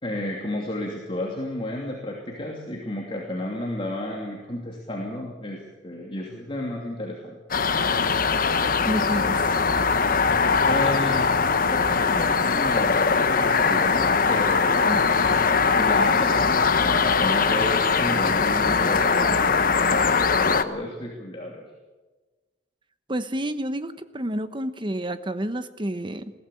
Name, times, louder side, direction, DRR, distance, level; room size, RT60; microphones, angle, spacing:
voice 1, 0.0-7.4 10.7-11.4 11.7-15.1 15.8-21.6, left 1 dB, 30° left, -1 dB, 2.9 m, -32 dB
sound 1, 7.5-20.6, left 5 dB, 50° left, 1.1 m, -21 dB
voice 2, 8.8-9.4 14.9-15.0 23.1-26.3, right 1 dB, 25° right, 11 dB, 1.1 m, -29 dB
21.5 x 16.5 x 8.5 m, 1.2 s
head